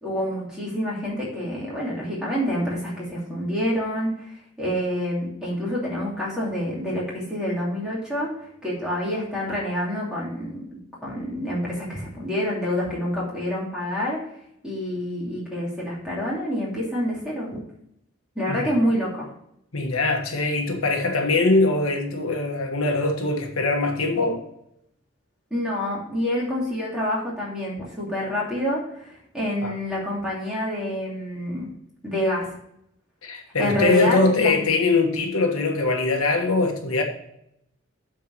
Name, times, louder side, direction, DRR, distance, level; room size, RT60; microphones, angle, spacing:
voice 1, 0.0-14.2 14.6-17.6 18.3-19.3 25.5-31.7 32.0-32.5 33.6-34.5, equal, 5° right, -6 dB, 2.8 m, -27 dB
voice 2, 19.7-24.4 29.6-29.7 33.2-37.0, left 3 dB, 85° left, 3 dB, 1.4 m, -22 dB
8.1 x 4.5 x 7.1 m, 0.76 s
head